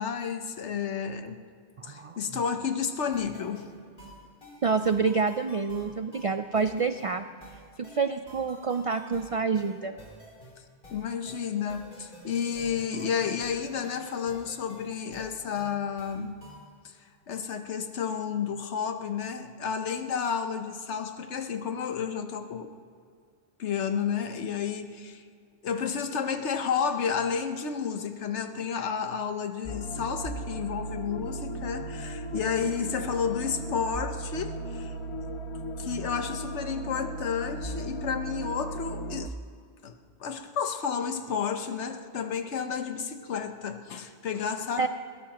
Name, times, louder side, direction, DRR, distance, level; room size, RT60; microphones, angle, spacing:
voice 1, 0.0-1.4 1.8-3.7 10.9-16.4 16.8-17.0 17.3-22.7 23.6-25.2 25.6-34.9 35.8-39.3 39.8-39.9 40.2-44.9, left 6 dB, 90° left, 7 dB, 1.2 m, -31 dB
voice 2, 1.8-2.2 4.6-7.3 7.8-9.9 44.8-44.9, right 5 dB, 65° right, 9 dB, 0.3 m, -27 dB
sound 1, 3.1-16.7, right 1 dB, 55° left, 3.5 m, -50 dB
sound 2, 29.6-39.3, right 1 dB, 35° left, 0.5 m, -36 dB
21.5 x 18.0 x 3.0 m, 2.3 s
omnidirectional pair, 1.1 m